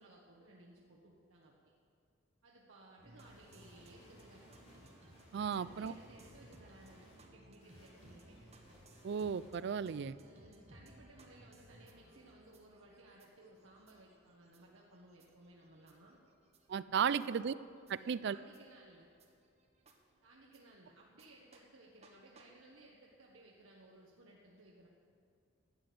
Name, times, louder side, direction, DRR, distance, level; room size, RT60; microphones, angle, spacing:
voice 1, 0.0-1.5 2.4-4.5 5.4-8.4 10.2-16.2 17.9-19.1 20.2-24.9, right 2 dB, 75° right, -3 dB, 1.3 m, -60 dB
sound 1, 3.0-20.6 21.2-21.3 21.5-21.6 22.0-22.1 22.4-22.5, right 1 dB, 30° right, 1.2 m, -62 dB
sound 2, 3.2-7.2 7.6-10.1, equal, 35° left, 4.1 m, -62 dB
voice 2, 5.3-6.0 9.0-10.2 16.7-17.5 17.9-18.4, right 7 dB, 55° right, 16 dB, 0.3 m, -35 dB
12.5 x 8.5 x 7.8 m, 2.4 s
head